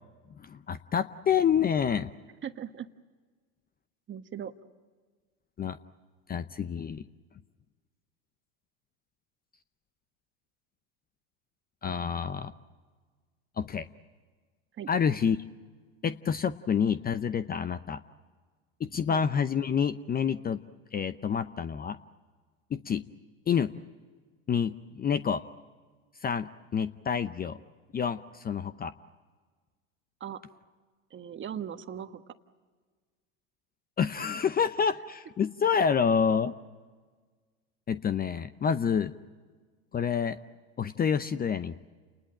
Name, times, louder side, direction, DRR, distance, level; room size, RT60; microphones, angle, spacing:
voice 1, 0.3-2.1 5.6-5.8 6.3-7.1 11.8-12.5 13.6-13.9 14.9-15.4 16.0-18.0 18.8-20.6 20.9-22.0 22.7-23.0 23.5-23.7 24.5-25.4 26.2-27.6 27.9-28.9 34.0-36.5 37.9-39.1 39.9-40.4 40.8-41.8, left 7 dB, 25° left, 14 dB, 0.7 m, -28 dB
voice 2, 2.4-2.9 4.1-4.5 14.8-14.9 19.1-19.2 30.2-30.4 31.1-32.2, right 9 dB, 30° right, 9 dB, 1.4 m, -38 dB
30.0 x 20.0 x 8.9 m, 1.5 s
hypercardioid pair, 100°, 40 cm